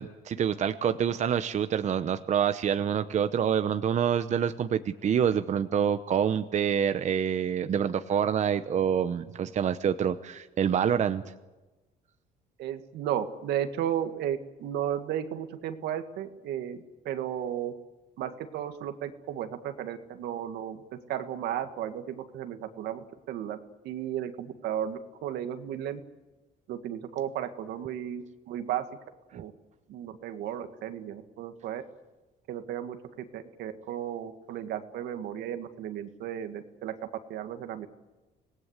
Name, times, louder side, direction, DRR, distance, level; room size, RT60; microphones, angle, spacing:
voice 1, 0.0-11.2, right 8 dB, 45° right, 10 dB, 0.9 m, -27 dB
voice 2, 12.6-17.7 18.2-23.6 23.8-26.0 26.7-28.9 29.3-29.5 29.9-31.8 32.5-37.0 37.3-37.9, right 10 dB, 80° right, 8 dB, 1.9 m, -34 dB
25.5 x 18.0 x 8.2 m, 1.1 s
cardioid pair, 110°, 17 cm